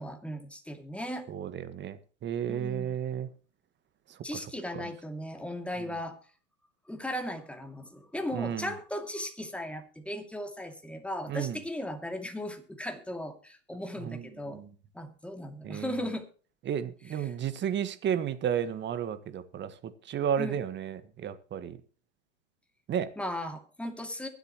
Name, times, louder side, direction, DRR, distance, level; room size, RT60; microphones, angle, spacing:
voice 1, 0.0-1.3 2.5-3.0 4.2-6.2 6.9-14.6 14.9-16.2 17.1-17.3 20.4-20.6 23.2-24.3, left 1 dB, 5° left, 2.5 m, -37 dB
voice 2, 1.3-3.3 4.3-4.4 4.7-4.9 8.3-8.7 11.3-11.6 14.0-14.7 15.6-16.0 16.7-21.8 22.9-23.1, right 9 dB, 30° right, 1.6 m, -33 dB
23.0 x 8.2 x 3.0 m
hypercardioid pair, 115°, 37 cm